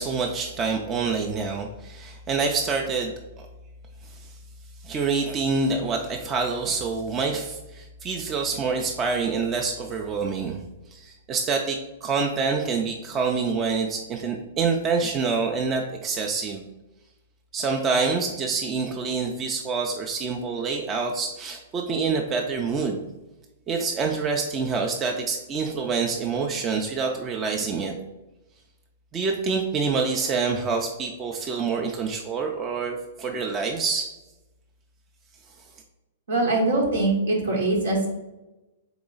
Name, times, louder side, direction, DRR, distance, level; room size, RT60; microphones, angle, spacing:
voice 1, 0.0-3.5 4.0-4.3 4.8-10.6 10.9-16.6 17.5-23.0 23.7-27.9 29.1-34.1, right 4 dB, 25° right, 1 dB, 0.4 m, -26 dB
voice 2, 36.3-38.1, right 2 dB, 80° right, -2 dB, 1.1 m, -22 dB
3.9 x 3.0 x 3.8 m, 1.0 s
hypercardioid pair, 120°, 0 cm